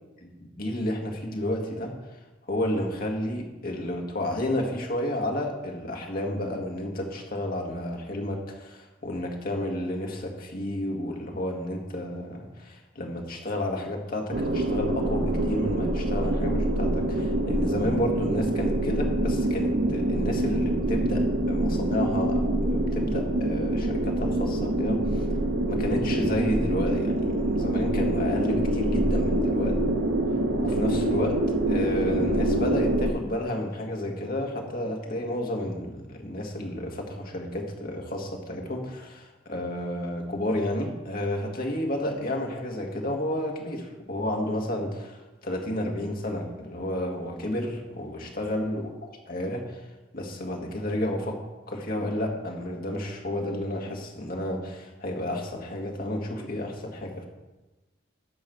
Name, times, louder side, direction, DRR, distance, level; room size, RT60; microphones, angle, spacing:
voice 1, 0.2-2.0 2.5-25.2 25.7-29.8 30.6-31.4 31.7-45.2 45.4-49.8 50.1-51.4 51.7-57.3, left 1 dB, 50° left, 1 dB, 1.8 m, -31 dB
sound 1, 14.3-33.1, right 1 dB, 85° right, 0.8 m, -25 dB
12.5 x 4.3 x 7.8 m, 1.1 s
head